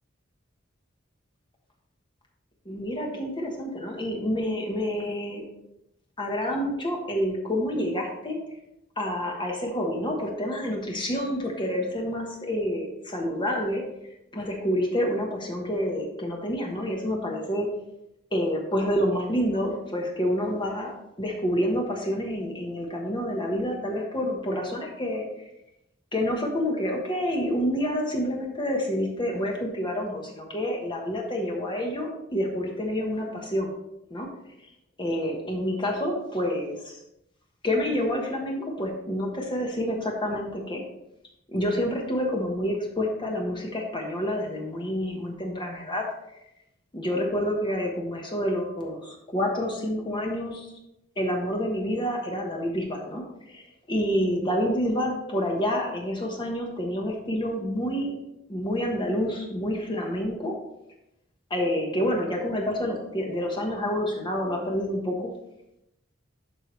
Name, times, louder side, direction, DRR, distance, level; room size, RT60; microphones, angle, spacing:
voice 1, 2.6-5.4 6.2-8.4 9.0-13.8 14.3-17.7 18.3-20.9 21.2-25.2 26.1-33.7 34.1-34.3 35.0-37.0 37.6-40.8 41.5-46.1 46.9-50.7 51.2-58.1 58.5-60.5 61.5-65.3, equal, 25° left, 0 dB, 1.1 m, -28 dB
12.0 x 4.8 x 3.2 m, 0.86 s
head